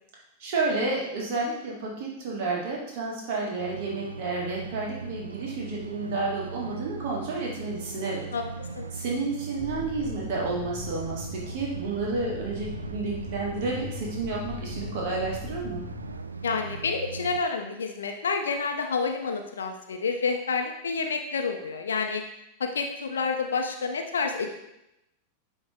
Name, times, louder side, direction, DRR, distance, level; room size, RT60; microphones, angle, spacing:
voice 1, 0.4-8.3 8.9-15.8, right 3 dB, 50° right, -3 dB, 1.7 m, -31 dB
sound 1, 3.6-17.4, right 4 dB, 75° right, 0.3 m, -39 dB
sound 2, 9.6-16.2, left 7 dB, 20° left, 0.9 m, -41 dB
voice 2, 16.4-22.2 22.6-24.6, left 4 dB, 70° left, 4 dB, 0.7 m, -29 dB
9.6 x 3.2 x 3.5 m, 0.86 s
figure-of-eight pair, 90°, 0 cm